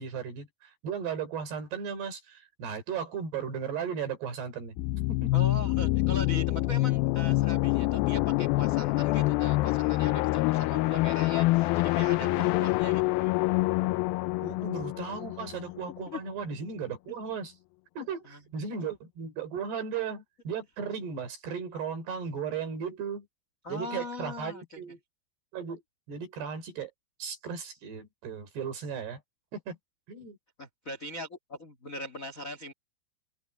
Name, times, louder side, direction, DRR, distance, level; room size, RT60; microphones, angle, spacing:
voice 1, 0.0-4.8 5.1-5.4 12.0-12.9 14.4-17.5 18.0-23.3 23.7-25.0 25.5-25.8 26.1-26.9 27.2-29.2 29.5-29.8 30.1-30.4, right 6 dB, 70° right, 6.7 m, -36 dB
sound 1, 4.8-16.3, left 19 dB, 85° left, 2.1 m, -26 dB
voice 2, 5.3-13.3 16.1-16.2 18.2-18.4 23.6-24.8 30.6-32.7, left 1 dB, 50° left, 0.9 m, -40 dB
open air
omnidirectional pair, 4.9 m